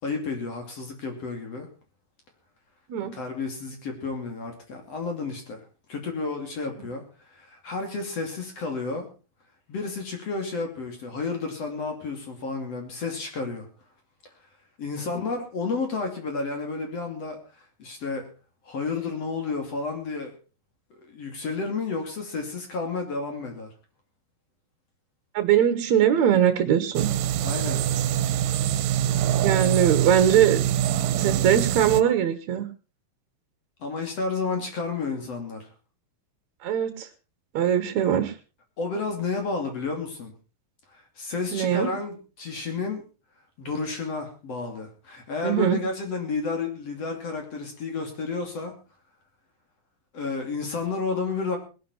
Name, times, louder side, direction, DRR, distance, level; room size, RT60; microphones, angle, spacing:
voice 1, 0.0-1.7 3.0-5.6 5.9-7.0 7.3-9.1 9.7-13.7 14.8-17.4 17.8-18.3 18.6-20.3 20.9-23.7 27.4-27.8 33.8-35.7 38.8-40.3 40.9-43.0 43.6-48.7 50.1-51.6, left 4 dB, 45° left, 4 dB, 3.6 m, -31 dB
voice 2, 25.3-27.1 29.4-30.6 31.2-32.7 36.6-37.1 37.5-38.3 41.5-41.9 45.4-45.8, right 9 dB, 65° right, 10 dB, 2.2 m, -21 dB
sound 1, 26.9-32.0, right 11 dB, 80° right, 2.4 m, -24 dB
20.0 x 11.0 x 4.3 m, 0.34 s
omnidirectional pair, 4.0 m